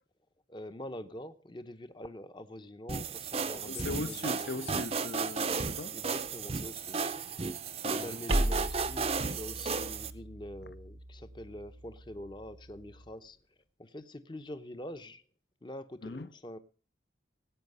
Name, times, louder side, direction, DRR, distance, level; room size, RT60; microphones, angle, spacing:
voice 1, 0.5-4.8 5.9-7.0 7.8-13.4 13.8-15.2 15.6-16.6, left 1 dB, 25° left, 0.8 m, -45 dB
sound 1, 2.9-10.1, right 5 dB, 30° right, 0.7 m, -34 dB
voice 2, 3.6-6.0 7.8-8.2 16.0-16.3, left 3 dB, 55° left, 0.7 m, -39 dB
sound 2, 8.3-13.1, right 1 dB, 90° right, 1.6 m, -37 dB
18.5 x 8.8 x 5.5 m
head